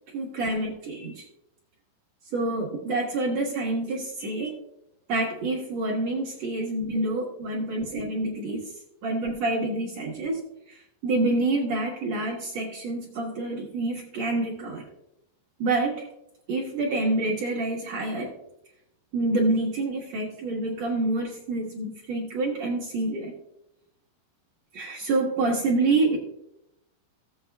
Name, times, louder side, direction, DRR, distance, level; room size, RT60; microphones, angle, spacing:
voice 1, 0.1-1.2 2.3-4.5 5.1-8.6 9.0-10.4 10.7-14.8 15.6-16.1 16.5-18.3 19.1-23.3 24.7-26.2, right 2 dB, 75° right, -3 dB, 1.5 m, -27 dB
17.0 x 7.7 x 2.3 m, 0.83 s
omnidirectional pair, 5.3 m